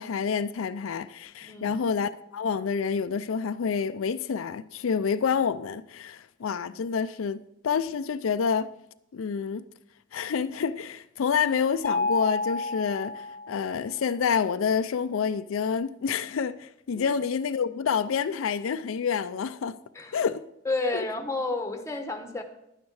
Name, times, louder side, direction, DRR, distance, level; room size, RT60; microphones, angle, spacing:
voice 1, 0.0-8.7 9.1-9.6 10.1-19.8 20.1-20.4 20.9-21.0, left 6 dB, 80° left, 0.4 m, -28 dB
voice 2, 1.4-1.8 17.0-17.1 19.9-20.2 20.6-22.4, left 2 dB, 15° left, 1.0 m, -31 dB
Mallet percussion, 11.8-13.8, left 3 dB, 40° left, 0.7 m, -30 dB
11.0 x 9.5 x 4.7 m
head